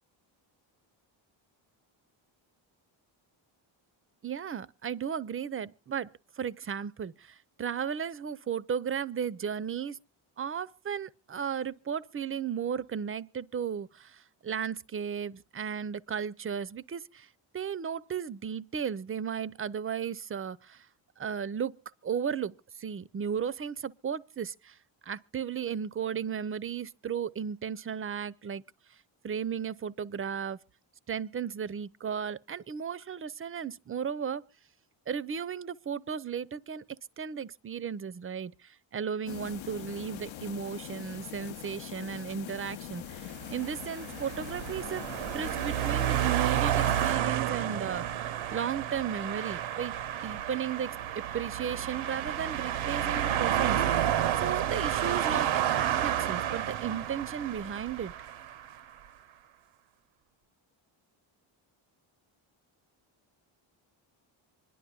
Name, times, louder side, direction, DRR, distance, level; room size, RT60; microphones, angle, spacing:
voice 1, 4.2-10.0 10.4-17.3 17.5-20.9 21.2-21.7 22.0-24.8 25.1-28.6 29.2-30.6 31.1-34.4 35.1-36.8 37.2-49.9 50.2-51.0 51.3-58.1, right 7 dB, 25° right, 0.5 m, -35 dB
sound 1, 39.3-47.1, left 12 dB, 65° left, 0.7 m, -43 dB
sound 2, 43.3-58.7, right 11 dB, 70° right, 0.8 m, -30 dB
25.5 x 11.0 x 2.3 m
cardioid pair, 100°, 50 cm